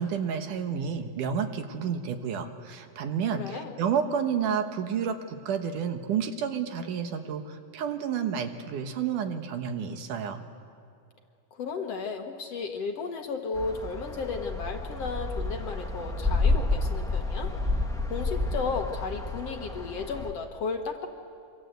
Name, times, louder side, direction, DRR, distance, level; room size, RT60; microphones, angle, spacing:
voice 1, 0.0-10.4, right 7 dB, 75° right, 7 dB, 2.8 m, -30 dB
voice 2, 3.3-3.7 11.5-17.5 18.0-21.1, left 4 dB, 55° left, 4 dB, 2.0 m, -34 dB
sound 1, 13.5-20.3, left 2 dB, ahead, 1.0 m, -30 dB
26.5 x 25.5 x 8.0 m, 2.4 s
omnidirectional pair, 3.8 m